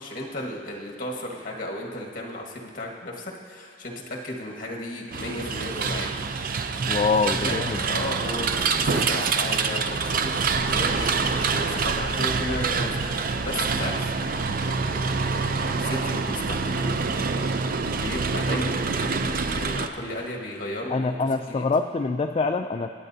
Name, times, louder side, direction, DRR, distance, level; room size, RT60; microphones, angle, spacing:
voice 1, 0.0-6.1 7.0-17.0 17.9-21.7, left 1 dB, 50° left, 0 dB, 1.4 m, -34 dB
sound 1, 5.1-19.9, right 4 dB, 50° right, 0.5 m, -26 dB
voice 2, 6.9-7.8 20.9-22.9, left 4 dB, 30° left, 5 dB, 0.3 m, -25 dB
24.0 x 8.6 x 2.7 m, 2.1 s
head